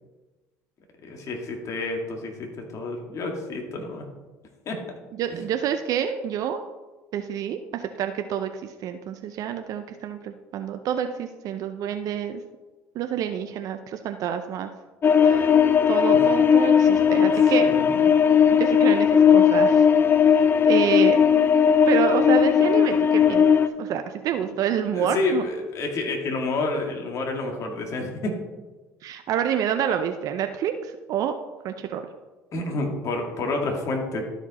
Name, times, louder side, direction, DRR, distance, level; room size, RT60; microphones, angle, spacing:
voice 1, 1.0-4.0 4.7-4.8 16.1-16.3 17.0-18.1 24.3-24.4 24.9-28.4 32.5-34.2, left 2 dB, 50° left, 2 dB, 2.0 m, -29 dB
voice 2, 5.2-6.6 7.1-12.4 12.9-14.7 15.2-15.6 15.9-17.8 18.5-19.8 20.6-21.2 21.9-23.5 23.8-25.4 29.0-31.4 31.6-32.0, right 9 dB, 60° right, 7 dB, 0.6 m, -28 dB
sound 1, 15.0-23.7, left 7 dB, 35° left, 0.5 m, -17 dB
12.5 x 5.1 x 4.1 m, 1.2 s
supercardioid pair, 80°, 7 cm